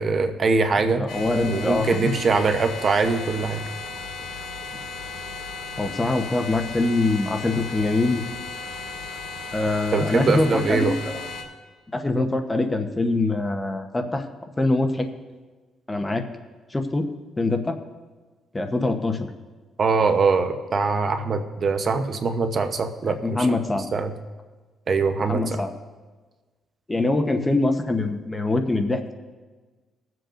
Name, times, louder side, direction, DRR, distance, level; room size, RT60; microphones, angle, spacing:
voice 1, 0.0-1.1 1.4-3.6 9.9-11.0 19.8-23.5 23.9-24.1 24.9-25.6, right 4 dB, 45° right, 7 dB, 0.9 m, -22 dB
voice 2, 0.9-2.1 5.8-8.2 9.5-10.9 11.9-14.2 14.6-15.1 15.9-16.2 16.7-17.0 17.4-17.7 18.5-19.3 23.1-23.9 25.3-25.7 26.9-29.1, left 2 dB, 20° left, 5 dB, 0.9 m, -23 dB
sound 1, 1.1-11.4, left 4 dB, 80° left, 1.8 m, -35 dB
21.0 x 7.7 x 2.6 m, 1.3 s
cardioid pair, 90°, 0 cm